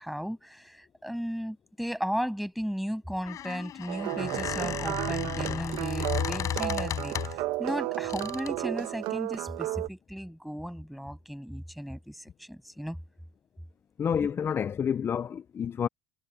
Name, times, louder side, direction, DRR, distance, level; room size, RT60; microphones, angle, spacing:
voice 1, 0.0-13.0 14.2-14.3, equal, ahead, 7.9 m, -35 dB
Squeak, 3.1-7.5 8.1-8.6, left 11 dB, 50° left, 5.9 m, -34 dB
sound 1, 3.9-9.9, right 18 dB, 75° right, 1.1 m, -33 dB
voice 2, 14.0-15.9, left 7 dB, 35° left, 0.6 m, -29 dB
supercardioid pair, 105°, 7 cm